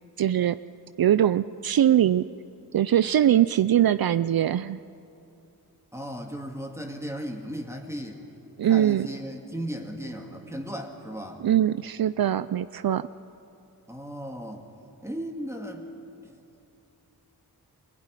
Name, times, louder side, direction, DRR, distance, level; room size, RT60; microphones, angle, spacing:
voice 1, 0.2-0.6 1.0-2.3 2.7-4.8 8.6-9.1 11.4-13.1, right 11 dB, 65° right, 14 dB, 0.5 m, -22 dB
voice 2, 5.9-8.2 8.7-11.4 13.9-14.6 15.0-15.8, equal, 5° right, 1 dB, 2.0 m, -36 dB
23.0 x 16.5 x 9.9 m, 2.7 s
wide cardioid pair, 70°, 38 cm